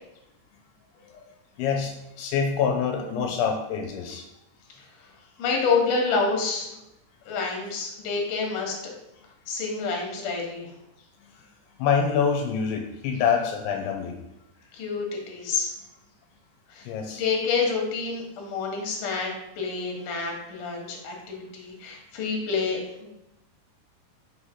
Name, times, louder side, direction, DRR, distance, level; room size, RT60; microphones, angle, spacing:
voice 1, 1.6-4.3 11.2-11.4 11.8-14.2 16.8-17.2, left 6 dB, 85° left, 3 dB, 2.6 m, -26 dB
voice 2, 5.4-6.7 7.3-8.7 9.5-10.7 14.7-15.7 16.7-16.9 17.2-19.3 19.6-23.1, left 4 dB, 60° left, 0 dB, 2.5 m, -28 dB
6.1 x 3.1 x 5.6 m, 0.89 s
omnidirectional pair, 4.7 m